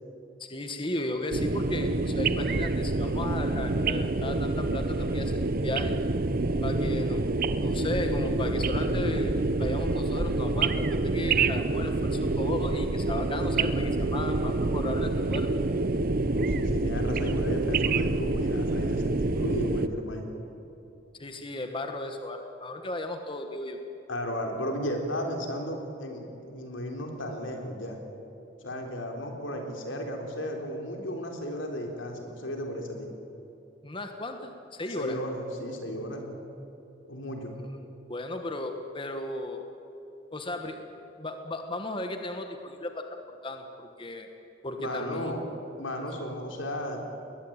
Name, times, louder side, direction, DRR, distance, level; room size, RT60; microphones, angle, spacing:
voice 1, 0.4-5.9 6.6-7.2 7.6-9.3 9.6-15.5 21.2-23.8 33.8-35.2 38.1-39.6 40.3-40.8 41.2-43.2 43.4-44.3 44.6-45.3, left 2 dB, 25° left, 5 dB, 1.4 m, -35 dB
sound 1, 1.3-19.9, right 2 dB, 50° right, 0.8 m, -27 dB
voice 2, 16.3-20.3 24.1-28.0 28.6-33.1 34.9-36.3 37.1-37.5 44.8-45.5 45.8-47.0, equal, 90° left, 3 dB, 4.0 m, -34 dB
21.0 x 20.5 x 8.8 m, 2.9 s
head